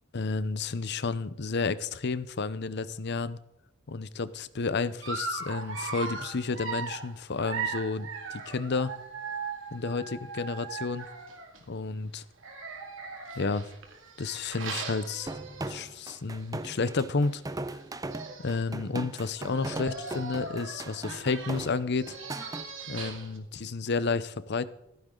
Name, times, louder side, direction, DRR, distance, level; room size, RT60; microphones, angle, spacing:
voice 1, 0.1-3.4 3.9-8.9 9.7-11.1 11.7-12.2 13.3-13.7 14.2-15.3 15.7-17.4 18.4-22.2 22.9-24.7, left 4 dB, 60° left, 15 dB, 0.7 m, -31 dB
Dog, 5.0-11.6 12.4-16.0 16.4-16.6 16.8-16.9 17.8-17.9 18.1-18.6 19.3-23.4, right 4 dB, 70° right, 2.5 m, -39 dB
sound 1, 15.3-22.7, right 2 dB, 20° right, 0.7 m, -38 dB
15.5 x 14.0 x 3.9 m, 0.86 s
head